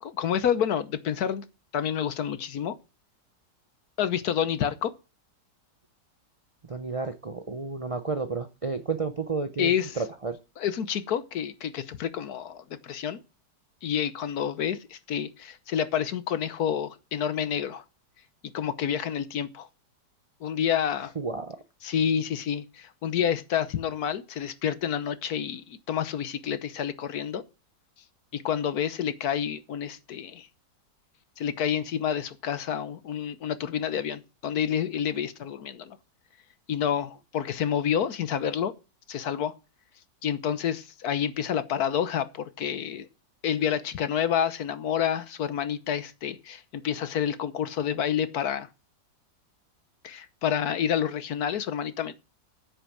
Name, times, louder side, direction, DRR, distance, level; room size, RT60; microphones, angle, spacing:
voice 1, 0.0-1.4 1.7-2.7 4.0-4.9 9.6-10.0 10.6-13.2 13.8-17.8 18.5-19.7 20.4-21.1 21.8-27.4 28.3-30.5 31.4-36.0 36.7-38.7 39.1-39.5 40.2-43.1 43.4-48.7 50.0-52.1, left 8 dB, 65° left, 1.4 m, -29 dB
voice 2, 6.7-10.4 21.2-21.6, right 4 dB, 55° right, 0.3 m, -31 dB
9.6 x 8.1 x 6.1 m
omnidirectional pair, 1.9 m